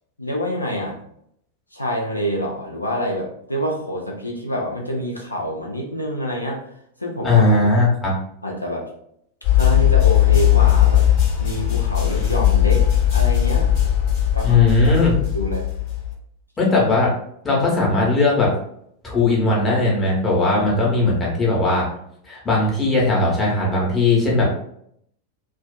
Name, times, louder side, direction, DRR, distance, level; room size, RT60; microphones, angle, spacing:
voice 1, 0.2-1.0 1.7-6.6 7.0-7.4 8.4-8.9 9.5-11.1 11.4-12.9 13.1-13.7 14.3-15.0 15.3-15.7, equal, 85° left, -1 dB, 0.4 m, -26 dB
voice 2, 7.2-8.1 14.4-15.1 16.6-17.1 17.4-18.5 19.0-21.9 22.3-24.5, left 3 dB, 15° left, -4 dB, 0.9 m, -18 dB
sound 1, 9.4-16.1, left 12 dB, 50° left, 0.9 m, -18 dB
2.4 x 2.3 x 2.2 m, 0.71 s
figure-of-eight pair, 90°, 0 cm